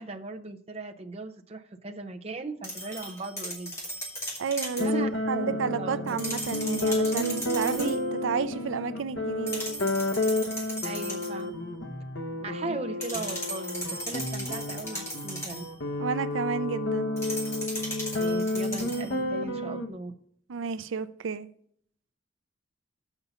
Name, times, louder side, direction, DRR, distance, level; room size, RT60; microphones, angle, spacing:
voice 1, 0.0-3.7 4.8-6.2 10.8-11.5 12.4-15.6 18.1-20.1, right 3 dB, 30° right, 0.6 m, -38 dB
sound 1, 2.6-4.9 6.1-8.0 9.5-11.4 13.0-15.7 17.2-19.1, equal, 15° left, 2.2 m, -37 dB
voice 2, 4.4-9.6 12.7-12.8 16.0-17.1 20.5-21.5, right 5 dB, 80° right, 0.5 m, -31 dB
sound 2, 4.8-19.9, left 1 dB, 70° left, 1.1 m, -31 dB
7.1 x 5.4 x 6.9 m
head